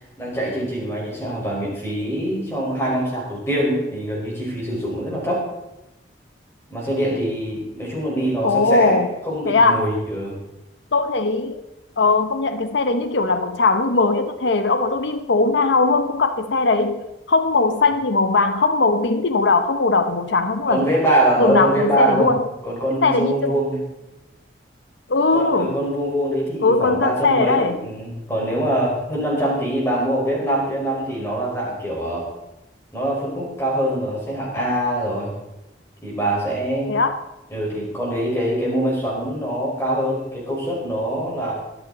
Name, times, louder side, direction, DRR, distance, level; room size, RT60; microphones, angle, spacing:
voice 1, 0.2-5.4 6.7-10.3 20.7-22.3 22.6-23.8 25.3-32.3 32.9-35.3 36.0-37.0 37.5-41.5, right 1 dB, 15° left, -4 dB, 5.1 m, -23 dB
voice 2, 8.4-9.1 9.5-9.9 10.9-11.6 12.0-20.8 21.4-22.5 23.0-23.5 25.1-25.8 26.6-27.8 36.9-37.2, left 3 dB, 80° left, 9 dB, 0.8 m, -19 dB
24.0 x 8.2 x 4.1 m, 0.95 s
head